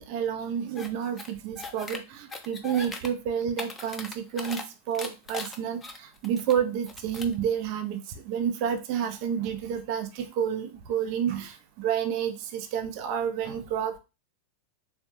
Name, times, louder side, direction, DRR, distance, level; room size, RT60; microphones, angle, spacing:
voice 1, 0.0-14.0, right 8 dB, 45° right, 7 dB, 0.4 m, -30 dB
sound 1, 0.8-0.9 1.2-2.0 2.3-3.1 3.4-4.6 4.9-6.5 6.9-7.3, left 3 dB, 15° left, 0.4 m, -39 dB
3.5 x 2.0 x 2.9 m, 0.28 s
figure-of-eight pair, 90°, 0 cm